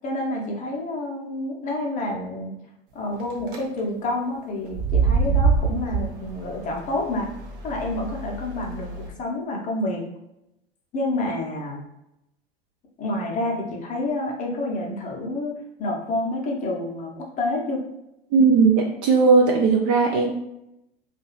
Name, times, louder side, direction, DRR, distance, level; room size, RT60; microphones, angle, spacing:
voice 1, 0.0-2.5 2.9-7.3 7.6-10.0 10.9-11.8 13.0-15.5 15.8-17.8, left 2 dB, 25° left, 0 dB, 0.7 m, -28 dB
sound 1, 3.2-3.6 4.7-9.1, right 5 dB, 60° right, 0.8 m, -25 dB
voice 2, 18.3-20.3, right 4 dB, 35° right, 0 dB, 0.4 m, -17 dB
2.7 x 2.4 x 2.9 m, 0.83 s
figure-of-eight pair, 85°, 31 cm